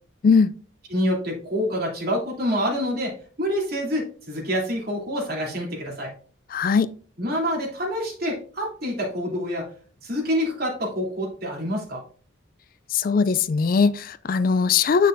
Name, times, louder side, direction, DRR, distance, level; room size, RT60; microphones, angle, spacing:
voice 1, 0.9-6.1 7.2-9.7 10.0-12.0, equal, 50° right, 3.1 m, -27 dB
voice 2, 6.5-6.9 12.9-15.1, left 5 dB, 45° left, 0.3 m, -20 dB
8.3 x 6.4 x 2.6 m
head